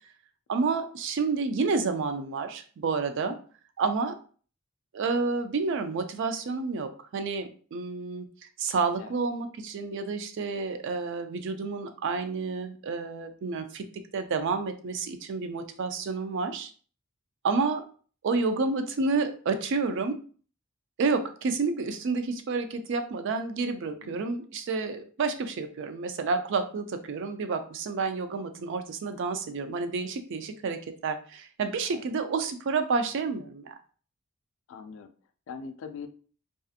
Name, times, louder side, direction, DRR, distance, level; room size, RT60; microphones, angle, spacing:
voice 1, 0.5-3.4 3.8-4.2 4.9-8.3 8.6-16.7 17.4-17.9 18.2-20.2 21.0-33.7, right 4 dB, 60° right, 8 dB, 0.4 m, -29 dB
voice 2, 34.7-35.1 35.5-36.1, left 5 dB, 65° left, 9 dB, 0.3 m, -41 dB
2.6 x 2.4 x 2.4 m, 0.42 s
head